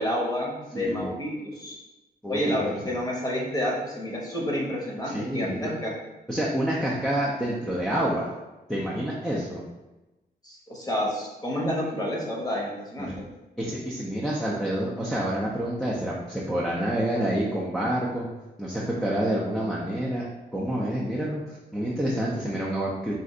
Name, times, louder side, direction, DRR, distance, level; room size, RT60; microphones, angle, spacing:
voice 1, 0.0-1.8 2.3-5.9 10.4-13.1, equal, 25° left, -3 dB, 1.0 m, -29 dB
voice 2, 0.8-1.1 2.2-2.6 5.1-5.7 6.3-8.3 8.7-9.6 13.0-13.1 13.6-18.3 18.6-20.3 20.5-23.1, right 1 dB, 5° left, -6 dB, 0.5 m, -28 dB
4.2 x 2.5 x 3.7 m, 1.1 s
wide cardioid pair, 145°, 17 cm